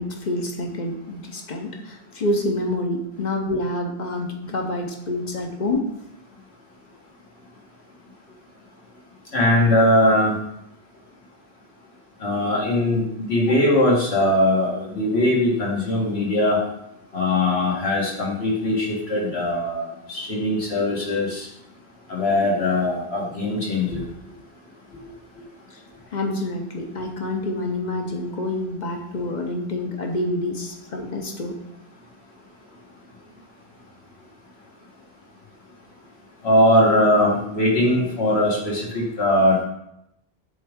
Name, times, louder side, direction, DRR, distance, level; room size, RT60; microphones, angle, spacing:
voice 1, 0.0-5.8 13.5-13.6 25.7-25.8 26.1-31.6, left 1 dB, 50° left, 2 dB, 0.9 m, -27 dB
voice 2, 9.3-10.3 12.2-16.6 17.1-21.5 22.1-24.0 36.4-39.6, left 1 dB, 80° left, -4 dB, 1.8 m, -20 dB
7.5 x 3.6 x 3.6 m, 0.79 s
omnidirectional pair, 1.1 m